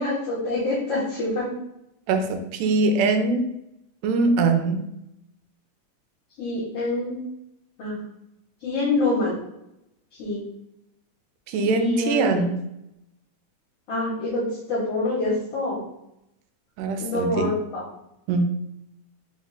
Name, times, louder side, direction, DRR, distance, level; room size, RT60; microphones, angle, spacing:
voice 1, 0.0-1.5 6.4-7.1 7.8-8.0 8.6-9.4 10.2-10.4 11.6-12.5 13.9-15.8 17.0-17.8, left 2 dB, 60° left, -6 dB, 1.8 m, -26 dB
voice 2, 2.1-3.5 4.0-4.8 11.5-12.6 16.8-17.6 18.3-18.5, right 3 dB, 90° right, 6 dB, 2.1 m, -22 dB
4.7 x 2.4 x 4.0 m, 0.83 s
omnidirectional pair, 3.5 m